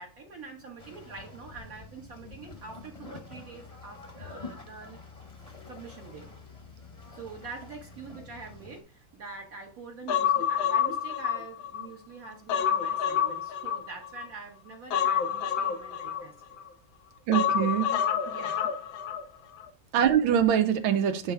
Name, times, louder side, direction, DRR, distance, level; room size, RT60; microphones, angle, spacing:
voice 1, 0.0-5.0 5.7-6.3 7.1-16.3 18.3-18.7, right 4 dB, 55° right, 1.2 m, -45 dB
sound 1, 0.8-8.8, left 3 dB, 25° left, 0.9 m, -47 dB
Human voice, 10.1-11.9 12.2-14.3 14.9-16.7 17.3-19.2 19.5-19.7, left 9 dB, 80° left, 1.5 m, -28 dB
voice 2, 17.3-17.9 19.9-21.3, right 9 dB, 90° right, 1.5 m, -24 dB
8.1 x 3.3 x 4.7 m
omnidirectional pair, 2.1 m